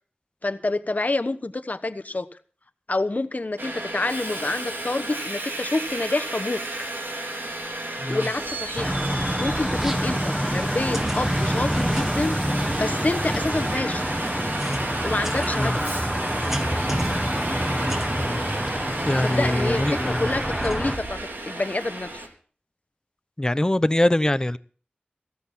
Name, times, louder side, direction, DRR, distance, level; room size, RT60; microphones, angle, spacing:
voice 1, 0.4-2.3 2.9-6.6 8.1-9.0 9.4-12.3 12.7-14.0 15.0-15.8 19.2-22.2, left 2 dB, 50° left, 10 dB, 1.1 m, -27 dB
Subway metro underground, 3.6-22.3, right 2 dB, 85° right, 3.4 m, -32 dB
voice 2, 8.0-8.3 15.5-15.8 18.2-18.4 19.0-20.3 23.4-24.6, left 1 dB, 20° left, 15 dB, 0.6 m, -23 dB
sound 1, 8.8-21.0, equal, 10° right, 1.4 m, -26 dB
16.0 x 14.0 x 4.3 m, 0.43 s
wide cardioid pair, 60°, 3 cm